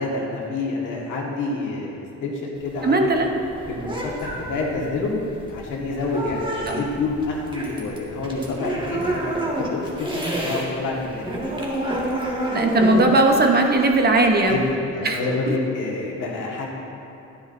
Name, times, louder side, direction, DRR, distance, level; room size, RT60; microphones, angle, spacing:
voice 1, 0.0-1.9 2.2-3.3 3.7-5.1 5.5-9.2 9.7-11.2 14.5-16.7, left 3 dB, 85° left, -3 dB, 1.7 m, -27 dB
sound 1, 2.6-10.7 11.0-14.7, right 1 dB, 15° right, 1.7 m, -28 dB
voice 2, 2.8-3.3 6.7-6.8 12.5-14.6 15.0-15.2 15.5-15.6, right 2 dB, 30° right, 3 dB, 0.9 m, -18 dB
10.5 x 9.5 x 2.6 m, 2.8 s
cardioid pair, 90°, 30 cm